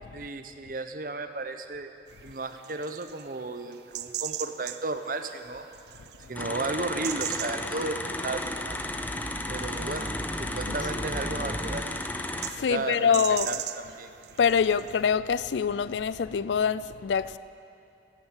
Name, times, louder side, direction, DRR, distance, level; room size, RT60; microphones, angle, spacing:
voice 1, 0.1-1.9 2.2-5.7 6.3-8.0 8.2-8.6 9.5-10.1 10.4-11.9 12.7-14.1, right 3 dB, 50° right, 0.8 m, -34 dB
sound 1, 2.1-15.1, right 12 dB, 70° right, 0.5 m, -41 dB
sound 2, 6.4-12.5, left 2 dB, 10° left, 0.5 m, -34 dB
sound 3, 8.1-11.8, right 1 dB, 20° right, 1.4 m, -38 dB
voice 2, 12.5-13.6 14.4-17.4, left 6 dB, 80° left, 0.4 m, -25 dB
15.0 x 9.0 x 8.3 m
head